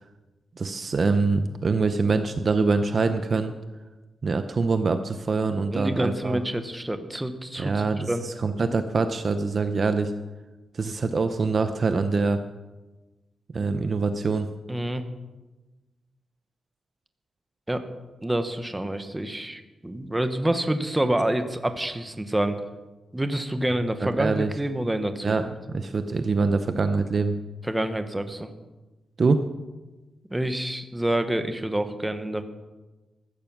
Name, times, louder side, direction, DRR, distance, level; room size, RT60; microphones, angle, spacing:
voice 1, 0.6-3.5 4.2-6.4 7.6-10.1 10.7-12.4 13.5-14.5 24.0-24.5 25.2-27.4 29.2-29.4, right 4 dB, 35° right, 9 dB, 0.7 m, -24 dB
voice 2, 5.7-8.2 14.7-15.0 17.7-17.9 18.2-22.6 23.1-25.3 27.6-28.5 30.3-32.4, right 1 dB, 10° right, 9 dB, 1.0 m, -27 dB
14.5 x 14.0 x 6.1 m, 1.2 s
wide cardioid pair, 180°, 0 cm